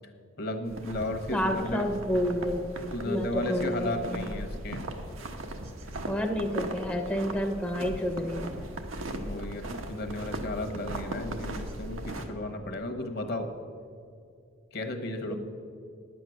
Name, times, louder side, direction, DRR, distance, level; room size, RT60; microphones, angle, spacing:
voice 1, 0.4-1.9 2.9-4.8 9.2-13.5 14.7-15.4, left 1 dB, 50° left, 6 dB, 1.1 m, -34 dB
sound 1, 0.6-12.2, right 1 dB, 85° right, 1.1 m, -38 dB
voice 2, 1.3-2.7 3.0-3.9 6.0-8.6 15.3-15.4, equal, 5° left, 1 dB, 0.6 m, -29 dB
10.0 x 8.3 x 6.3 m, 2.4 s
head